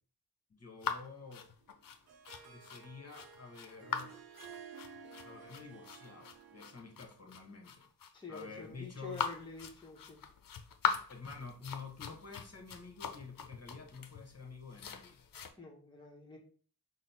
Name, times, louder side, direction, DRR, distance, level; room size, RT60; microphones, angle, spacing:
voice 1, 0.5-1.5 2.4-4.1 5.2-7.9 8.3-9.2 11.1-15.2, left 4 dB, 40° left, 1 dB, 0.9 m, -49 dB
sound 1, 0.8-15.5, left 7 dB, 60° left, 0.5 m, -41 dB
Harp, 1.7-7.0, right 6 dB, 70° right, 0.6 m, -54 dB
voice 2, 8.1-10.2 15.6-16.4, left 3 dB, 10° left, -1 dB, 0.8 m, -48 dB
4.0 x 2.0 x 4.1 m, 0.44 s
wide cardioid pair, 65°, 38 cm